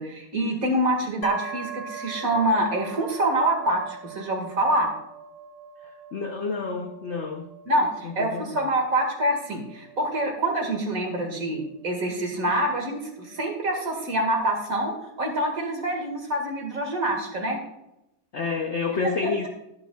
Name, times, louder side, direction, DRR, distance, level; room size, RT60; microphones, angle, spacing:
voice 1, 0.0-4.9 7.7-17.6 19.2-19.3, right 1 dB, 45° right, 2 dB, 2.2 m, -26 dB
sound 1, 1.2-14.9, right 5 dB, 65° left, 1.8 m, -42 dB
voice 2, 5.8-7.5 8.0-8.6 18.3-19.5, left 4 dB, 85° left, 4 dB, 0.6 m, -29 dB
12.0 x 11.0 x 2.3 m, 0.86 s
omnidirectional pair, 2.2 m